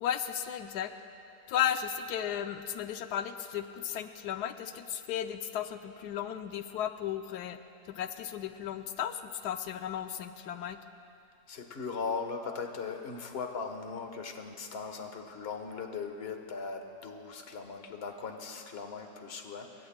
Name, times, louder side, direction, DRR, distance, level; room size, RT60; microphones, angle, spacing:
voice 1, 0.0-0.9 1.5-7.6 7.9-10.8, left 9 dB, 85° left, 8 dB, 1.2 m, -34 dB
voice 2, 11.5-19.9, left 5 dB, 40° left, 5 dB, 1.3 m, -39 dB
27.0 x 23.5 x 2.2 m, 2.6 s
omnidirectional pair, 1.7 m